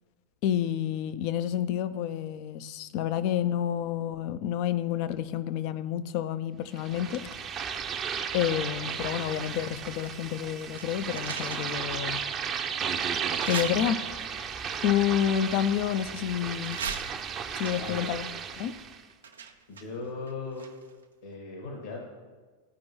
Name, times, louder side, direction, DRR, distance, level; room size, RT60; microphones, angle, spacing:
voice 1, 0.4-7.2 8.3-12.2 13.4-14.0 14.8-16.8 17.6-18.3 18.6-18.7, left 10 dB, 50° left, 13 dB, 0.5 m, -29 dB
sound 1, 6.8-19.0, right 7 dB, 30° right, 0.7 m, -34 dB
sound 2, 8.9-10.1 10.4-12.0 12.5-12.6 13.3-14.4 15.2-16.2 16.6-21.0 21.3-21.4, right 6 dB, 75° right, 0.6 m, -41 dB
voice 2, 17.7-18.1 19.7-20.7 21.2-22.0, left 3 dB, 70° left, -1 dB, 1.7 m, -38 dB
14.5 x 5.2 x 3.1 m, 1.4 s
figure-of-eight pair, 90°, 0 cm